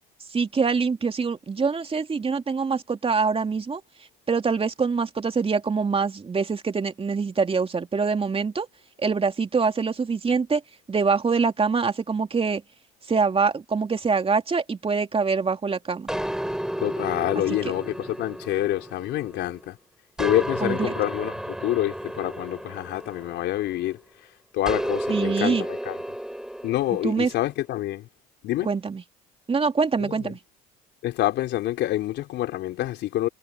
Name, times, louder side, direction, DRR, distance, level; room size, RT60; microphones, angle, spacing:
voice 1, 0.3-3.8 4.3-8.7 9.0-10.6 10.9-12.6 13.1-16.1 20.6-21.0 25.1-25.7 27.0-27.3 28.6-29.0 29.5-30.4, right 5 dB, 30° right, 2.9 m, -24 dB
sound 1, 16.1-19.7 20.2-23.9 24.7-27.3, equal, 5° right, 3.8 m, -32 dB
voice 2, 16.8-19.8 20.2-24.0 24.5-26.0 26.6-28.1 28.4-28.7 30.0-30.2 31.0-33.3, left 14 dB, 65° left, 3.9 m, -27 dB
hypercardioid pair, 65°, 20 cm